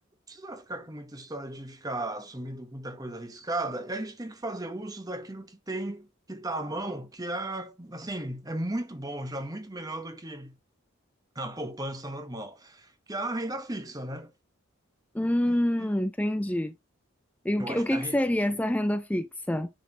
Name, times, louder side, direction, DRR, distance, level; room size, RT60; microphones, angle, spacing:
voice 1, 0.3-10.6 11.3-14.3 15.5-15.9 17.6-18.2, right 1 dB, 15° right, 1.0 m, -36 dB
voice 2, 15.1-16.7 17.4-19.7, left 1 dB, 5° left, 0.4 m, -27 dB
10.0 x 4.2 x 2.8 m
head